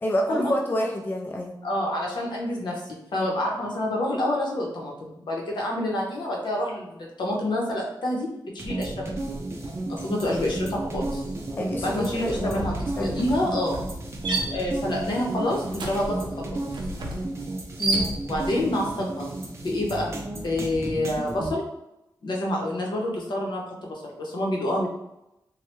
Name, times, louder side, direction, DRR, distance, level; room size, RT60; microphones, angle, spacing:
voice 1, 0.0-1.6 11.6-13.2 17.8-18.2, left 1 dB, 25° left, 1 dB, 0.3 m, -28 dB
voice 2, 1.6-9.2 9.9-11.2 11.8-13.8 14.5-16.6 18.2-19.3 19.6-21.6 22.2-24.9, left 1 dB, 75° left, -1 dB, 0.8 m, -28 dB
sound 1, 8.6-21.5, right 2 dB, 35° right, 0.5 m, -33 dB
sound 2, 9.6-9.9 10.1-18.6, right 2 dB, 85° right, 0.6 m, -33 dB
3.2 x 2.2 x 3.0 m, 0.87 s
wide cardioid pair, 165°, 8 cm